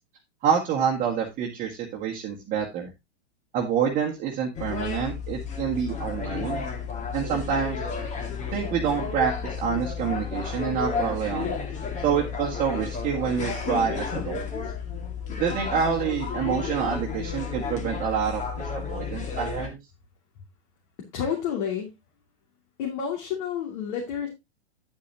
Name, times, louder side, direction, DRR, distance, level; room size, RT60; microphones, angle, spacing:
voice 1, 0.4-2.9 3.5-6.6 7.1-7.8 8.5-11.5 12.0-14.5 15.4-18.4 18.7-19.8, right 7 dB, 25° right, -2 dB, 1.7 m, -27 dB
sound 1, 4.5-19.7, left 6 dB, 20° left, 2.0 m, -32 dB
voice 2, 21.1-21.9 22.8-24.3, left 8 dB, 50° left, -1 dB, 2.8 m, -29 dB
9.9 x 8.4 x 2.9 m, 0.21 s
figure-of-eight pair, 105°, 33 cm